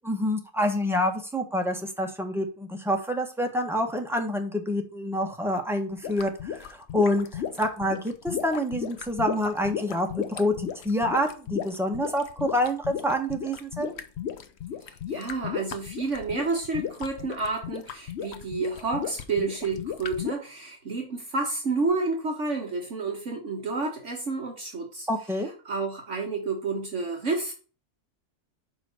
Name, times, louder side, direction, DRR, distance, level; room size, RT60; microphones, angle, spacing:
voice 1, 0.0-13.9 25.1-25.5, left 1 dB, ahead, 3 dB, 1.2 m, -27 dB
sound 1, 6.0-20.3, left 8 dB, 55° left, 0.9 m, -35 dB
voice 2, 14.9-25.1 25.6-27.5, right 3 dB, 55° right, 2 dB, 1.6 m, -30 dB
5.1 x 4.9 x 6.3 m, 0.36 s
omnidirectional pair, 1.6 m